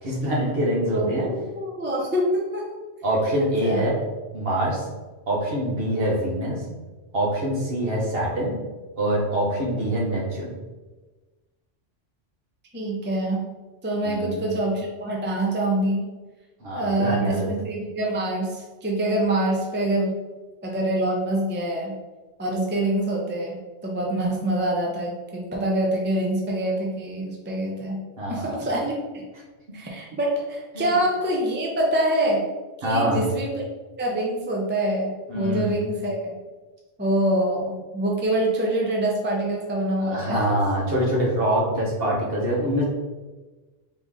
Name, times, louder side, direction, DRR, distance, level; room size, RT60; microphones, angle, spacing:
voice 1, 0.0-1.3 3.0-4.0 4.3-4.9 5.3-6.6 7.1-8.5 9.0-10.5 14.0-14.4 16.6-17.5 28.2-28.6 30.7-31.0 32.8-33.2 35.3-35.7 40.0-42.8, right 1 dB, 55° right, -4 dB, 1.4 m, -24 dB
voice 2, 1.0-2.7 3.6-3.8 12.7-13.4 13.8-16.0 16.7-20.2 20.6-21.9 22.4-28.0 28.3-29.3 29.7-32.4 32.8-33.6 34.0-36.4 37.0-40.6, right 1 dB, 15° right, -2 dB, 0.5 m, -25 dB
3.9 x 3.4 x 3.7 m, 1.2 s
omnidirectional pair, 1.2 m